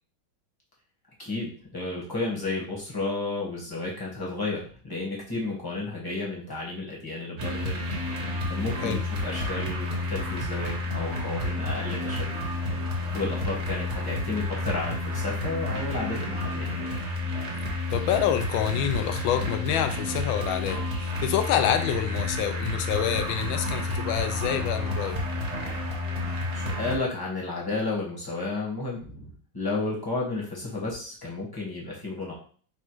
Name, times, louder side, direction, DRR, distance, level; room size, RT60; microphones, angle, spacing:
voice 1, 1.2-7.8 8.5-12.3 13.1-16.7 26.5-32.4, left 3 dB, 15° left, 0.9 m, -32 dB
sound 1, 7.4-27.0, left 2 dB, 45° right, 1.2 m, -30 dB
voice 2, 17.9-25.2, left 9 dB, 75° left, 1.3 m, -27 dB
4.2 x 2.3 x 4.5 m
omnidirectional pair, 2.3 m